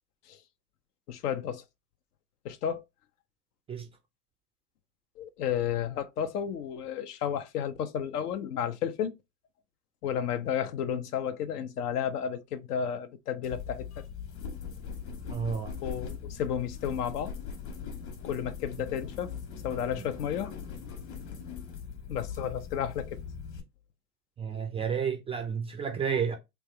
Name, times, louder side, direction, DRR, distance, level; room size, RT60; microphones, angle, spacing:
voice 1, 1.1-1.6 2.4-2.8 5.2-9.1 10.0-14.0 15.8-17.3 18.2-19.3 19.6-20.5 22.1-23.2, left 8 dB, 75° left, 0.7 m, -32 dB
sound 1, 13.4-23.6, left 6 dB, 50° left, 1.4 m, -40 dB
voice 2, 15.3-15.7 20.0-20.1 24.4-26.4, right 6 dB, 15° right, 0.3 m, -31 dB
3.3 x 2.3 x 3.8 m
hypercardioid pair, 85°, 46 cm